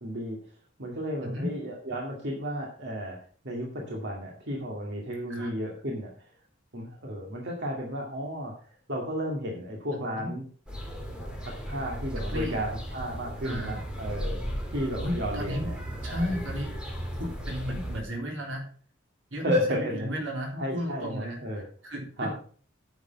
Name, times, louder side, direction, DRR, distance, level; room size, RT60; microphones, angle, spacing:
voice 1, 0.0-0.4 0.8-3.2 3.4-6.3 6.7-10.4 11.2-15.8 16.1-16.3 19.4-20.1 20.5-21.7 22.2-22.3, equal, 60° right, -1 dB, 2.2 m, -33 dB
voice 2, 9.9-10.3 12.2-12.6 13.4-13.8 15.0-15.7 16.0-16.8 17.2-18.7 19.3-22.3, equal, 80° right, 1 dB, 3.8 m, -34 dB
sound 1, 10.7-18.0, equal, 5° right, 2.6 m, -35 dB
9.8 x 7.2 x 5.7 m, 0.43 s
head